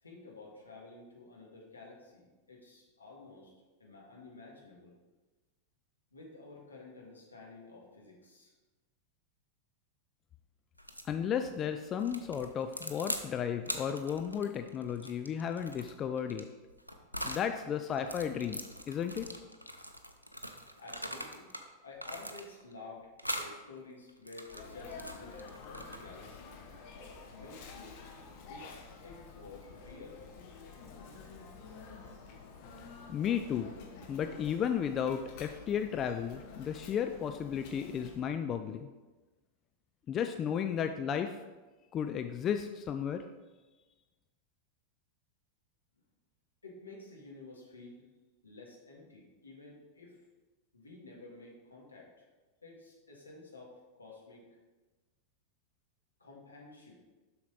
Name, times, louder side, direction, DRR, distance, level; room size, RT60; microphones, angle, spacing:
voice 1, 0.0-3.5 3.8-5.0 6.1-8.5 20.8-21.5 21.8-26.5 27.3-28.0 28.4-30.2 46.6-48.1 48.4-50.2 50.7-52.2 52.6-54.5 56.2-57.0, left 3 dB, 80° left, -3 dB, 1.8 m, -51 dB
sound 1, 10.8-11.1 12.0-13.3 13.6-17.5 17.9-21.7 22.0-22.7 23.2-23.5 24.1-26.2, equal, 90° right, 0.6 m, -42 dB
voice 2, 11.1-16.5 17.2-19.3 33.1-33.7 34.1-38.9 40.1-41.3 41.9-43.2, left 8 dB, 30° left, 7 dB, 0.4 m, -34 dB
Sneeze, 24.5-38.2, left 4 dB, 45° left, 1.2 m, -49 dB
7.2 x 6.0 x 4.0 m, 1.2 s
figure-of-eight pair, 90°, 0 cm